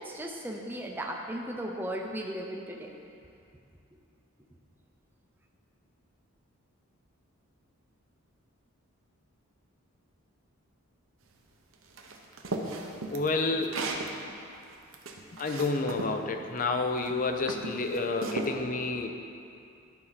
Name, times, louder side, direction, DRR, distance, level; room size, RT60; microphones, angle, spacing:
voice 1, 0.0-2.9, right 1 dB, 10° right, 0 dB, 0.6 m, -36 dB
sound 1, 12.0-14.1 14.6-16.1 16.9-17.1 17.5-18.5, right 2 dB, 65° right, 0.8 m, -35 dB
voice 2, 13.1-13.8 15.3-19.1, left 3 dB, 35° left, 5 dB, 0.5 m, -29 dB
11.0 x 4.7 x 5.7 m, 2.5 s
head